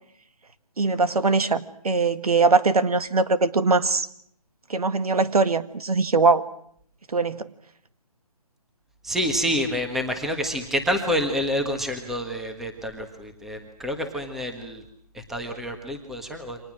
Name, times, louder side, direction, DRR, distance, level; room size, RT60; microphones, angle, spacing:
voice 1, 0.8-4.1 4.7-6.4 7.1-7.5, right 3 dB, 75° right, 12 dB, 1.8 m, -21 dB
voice 2, 9.0-14.8 15.1-16.6, equal, ahead, 5 dB, 1.5 m, -28 dB
29.0 x 25.5 x 6.3 m, 0.65 s
hypercardioid pair, 165°, 19 cm